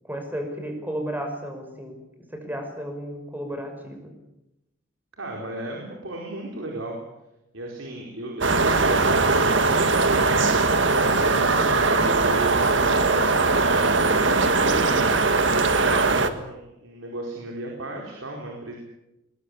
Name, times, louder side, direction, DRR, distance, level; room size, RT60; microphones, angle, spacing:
voice 1, 0.1-1.9 2.3-4.1, equal, 10° right, 4 dB, 5.5 m, -33 dB
voice 2, 5.2-7.0 7.5-10.4 11.1-11.5 11.8-15.0 15.5-18.8, right 2 dB, 85° right, 0 dB, 4.7 m, -35 dB
sound 1, 8.4-16.3, right 3 dB, 65° right, 1.8 m, -20 dB
21.5 x 21.0 x 8.5 m, 0.93 s
head